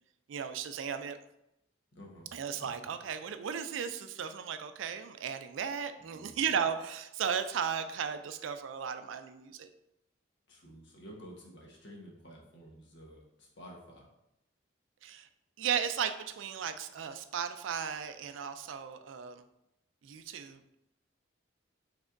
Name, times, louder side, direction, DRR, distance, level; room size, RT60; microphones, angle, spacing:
voice 1, 0.3-1.2 2.3-9.7 15.0-15.3 15.6-19.4 20.0-20.6, right 7 dB, 80° right, 10 dB, 0.4 m, -35 dB
voice 2, 1.9-2.3 2.6-2.7 6.0-6.4 10.5-14.0, equal, 65° left, -2 dB, 1.1 m, -51 dB
5.1 x 3.4 x 2.5 m, 0.84 s
head